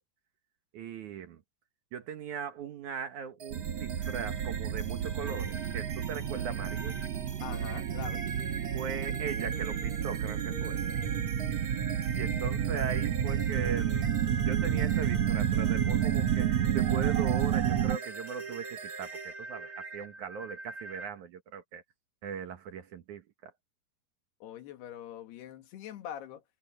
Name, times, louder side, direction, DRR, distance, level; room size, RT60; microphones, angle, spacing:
voice 1, 0.7-1.4 1.9-7.0 8.7-10.8 12.1-13.9 14.5-21.8 22.2-23.5, right 7 dB, 60° right, 2.3 m, -39 dB
sound 1, 3.4-21.1, right 4 dB, 45° right, 1.1 m, -42 dB
sound 2, 3.5-18.0, right 9 dB, 85° right, 1.4 m, -30 dB
voice 2, 7.4-8.2 24.4-26.4, left 10 dB, 90° left, 3.9 m, -43 dB
omnidirectional pair, 4.5 m